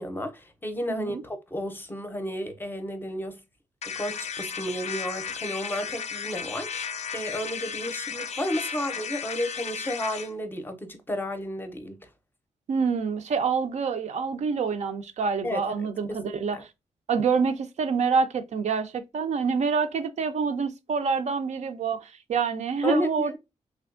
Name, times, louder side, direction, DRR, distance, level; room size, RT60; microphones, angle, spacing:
voice 1, 0.0-3.4 3.8-12.1 15.4-15.7 16.1-16.6 22.8-23.4, left 1 dB, 15° left, 0.6 m, -32 dB
voice 2, 0.9-1.2 12.7-16.6 17.1-23.4, right 5 dB, 70° right, 0.5 m, -27 dB
sound 1, 3.8-10.3, left 7 dB, 60° left, 0.4 m, -34 dB
3.4 x 2.6 x 2.4 m
wide cardioid pair, 125°, 12 cm